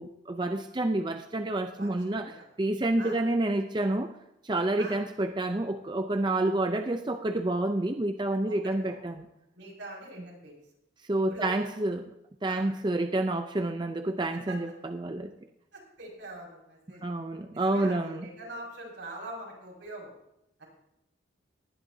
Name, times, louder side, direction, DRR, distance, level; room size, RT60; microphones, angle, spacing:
voice 1, 0.0-4.1 4.4-9.3 11.1-12.0 12.4-15.3 17.0-18.2, right 2 dB, 25° right, 7 dB, 0.5 m, -29 dB
voice 2, 1.8-2.4 3.0-3.2 4.8-5.0 8.5-9.0 9.5-10.5 11.3-11.7 12.5-12.7 14.5-14.6 15.7-17.0 17.5-20.1 20.6-20.7, right 1 dB, 80° right, -3 dB, 5.7 m, -43 dB
19.0 x 11.0 x 2.7 m, 0.85 s
head